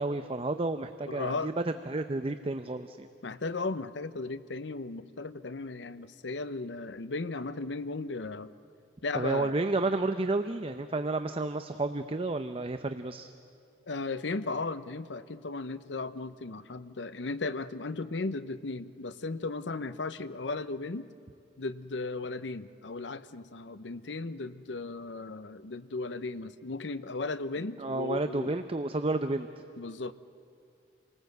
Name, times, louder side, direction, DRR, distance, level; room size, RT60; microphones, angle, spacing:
voice 1, 0.0-3.1 9.1-13.3 27.8-29.5, right 2 dB, 30° right, 9 dB, 0.7 m, -31 dB
voice 2, 1.1-1.5 3.2-8.5 9.0-9.5 13.9-21.1 21.6-28.5 29.8-30.1, left 3 dB, 90° left, 13 dB, 0.8 m, -36 dB
28.5 x 19.0 x 8.0 m, 2.4 s
head